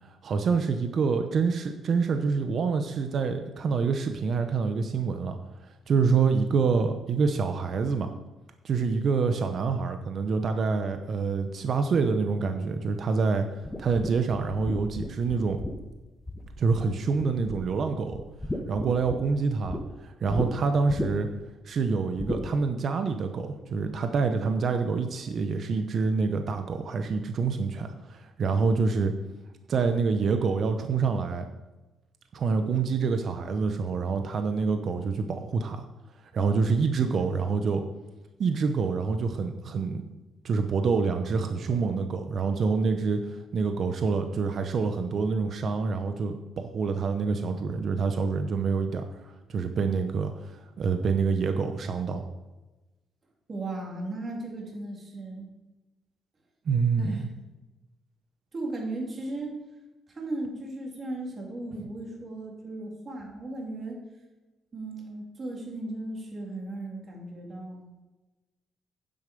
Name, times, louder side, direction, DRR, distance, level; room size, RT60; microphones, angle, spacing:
voice 1, 0.0-5.4 5.9-8.1 8.6-15.6 16.6-18.2 18.7-21.3 21.6-29.1 29.7-31.5 32.3-35.9 36.3-37.8 38.4-40.0 40.4-52.2 56.7-57.2, right 5 dB, 55° right, 7 dB, 0.8 m, -27 dB
sound 1, 13.6-16.9 17.2-17.8 18.1-19.8 20.3-20.5 20.9-21.4 22.2-22.4, left 1 dB, 15° left, 1.2 m, -34 dB
voice 2, 53.5-55.5 57.0-57.2 58.5-59.6 60.1-64.0 64.7-67.9, right 2 dB, 40° right, -1 dB, 3.1 m, -36 dB
9.7 x 7.6 x 5.3 m, 1.1 s
cardioid pair, 90°, 0 cm